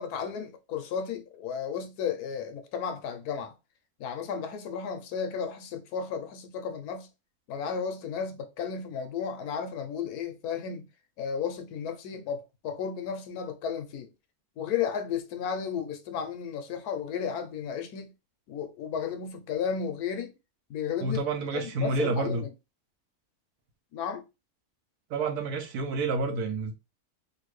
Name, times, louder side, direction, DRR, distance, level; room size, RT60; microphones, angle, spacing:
voice 1, 0.0-3.5 4.0-7.1 7.5-10.9 11.2-14.1 14.6-18.1 18.5-20.4 20.7-21.2 21.5-22.5 23.9-24.2, left 7 dB, 90° left, 1.2 m, -33 dB
voice 2, 21.0-22.4 25.1-26.7, right 3 dB, 85° right, 1.3 m, -29 dB
3.4 x 2.4 x 3.1 m
omnidirectional pair, 1.6 m